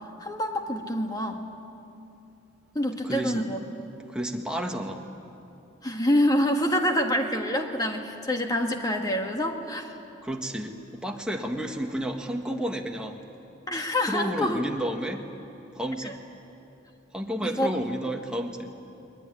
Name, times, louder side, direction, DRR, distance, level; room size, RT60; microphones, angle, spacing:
voice 1, 0.2-1.4 2.7-3.6 5.8-9.9 13.7-14.6 16.0-16.1 17.4-17.7, left 1 dB, 20° left, 3 dB, 1.8 m, -26 dB
voice 2, 3.0-3.5 4.1-5.0 10.2-13.2 14.1-15.2 15.7-16.2 17.1-18.7, equal, 5° right, 2 dB, 1.6 m, -31 dB
22.0 x 21.0 x 9.8 m, 2.8 s
head